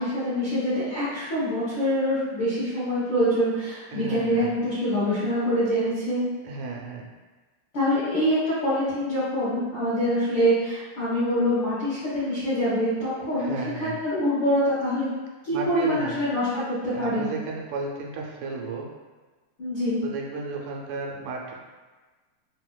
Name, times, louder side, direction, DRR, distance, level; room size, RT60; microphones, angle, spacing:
voice 1, 0.0-6.2 7.7-13.5 13.8-15.1 15.4-17.3 19.6-20.0, equal, 90° left, -12 dB, 1.0 m, -25 dB
voice 2, 3.9-4.6 6.4-7.1 13.4-14.0 15.5-16.2 16.9-18.9 20.0-21.5, right 3 dB, 90° right, 0 dB, 2.1 m, -33 dB
4.8 x 2.1 x 2.2 m, 1.3 s
omnidirectional pair, 3.6 m